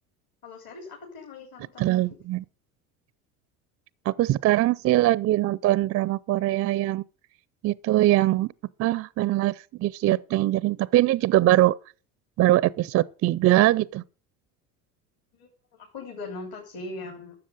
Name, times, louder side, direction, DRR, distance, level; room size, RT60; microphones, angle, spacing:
voice 1, 0.4-2.0 15.3-17.4, left 3 dB, 50° left, 3.7 m, -40 dB
voice 2, 1.8-2.4 4.1-7.0 7.6-8.5 8.8-11.8 12.4-14.0, right 15 dB, 35° right, 0.4 m, -22 dB
12.5 x 7.4 x 6.4 m
hypercardioid pair, 75°, 44 cm